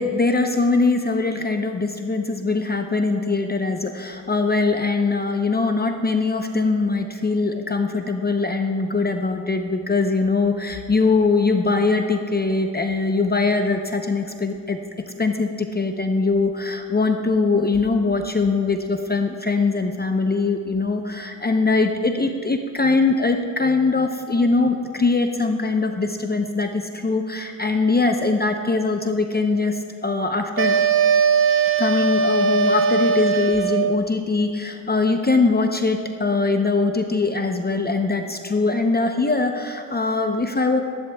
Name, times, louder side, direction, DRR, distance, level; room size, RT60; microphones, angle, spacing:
voice 1, 0.0-14.8 15.2-30.8 31.8-40.8, left 3 dB, 20° left, 5 dB, 0.7 m, -22 dB
sound 1, 30.6-34.1, right 5 dB, 30° right, 0.7 m, -19 dB
19.5 x 11.0 x 2.3 m, 2.3 s
cardioid pair, 70°, 45 cm